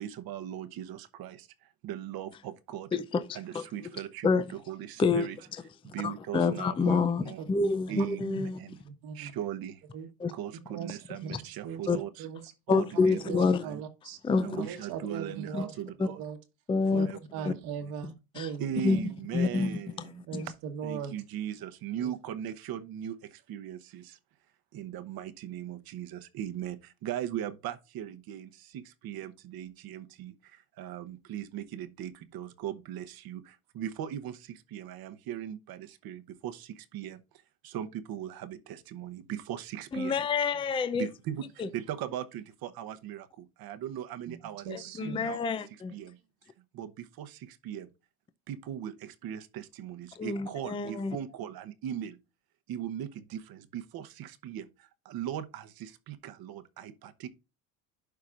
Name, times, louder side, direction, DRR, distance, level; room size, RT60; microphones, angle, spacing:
voice 1, 0.0-2.9 3.3-5.4 5.8-7.4 7.9-8.8 9.1-9.8 10.3-12.3 12.7-13.8 14.4-16.2 16.9-17.5 17.8-17.9 18.6-20.5 20.8-24.2 24.7-37.2 37.6-40.2 40.9-44.7 45.0-45.6 45.9-46.2 46.7-47.9 48.5-52.2 52.7-57.3, right 10 dB, 55° right, 1.0 m, -39 dB
voice 2, 2.9-3.6 4.2-4.4 5.0-5.3 6.0-8.6 10.2-10.3 11.9-12.0 12.7-13.6 14.2-14.6 15.5-15.6 16.0-16.1 16.7-17.1 17.5-17.6 18.4-18.5 18.8-19.0 19.3-19.8 20.3-20.5 39.9-41.1 41.6-41.7 44.7-45.9 50.2-51.2, left 4 dB, 10° left, 0.5 m, -27 dB
voice 3, 6.8-7.3 7.9-8.1 8.8-9.3 9.9-10.1 10.7-12.5 13.0-13.4 13.6-14.2 14.5-15.7 16.0-16.4 16.9-17.1 17.3-18.8 20.3-21.1 22.0-22.1 44.3-44.4 44.6-45.2, right 7 dB, 70° right, 1.6 m, -39 dB
11.5 x 4.7 x 2.5 m
supercardioid pair, 110°, 44 cm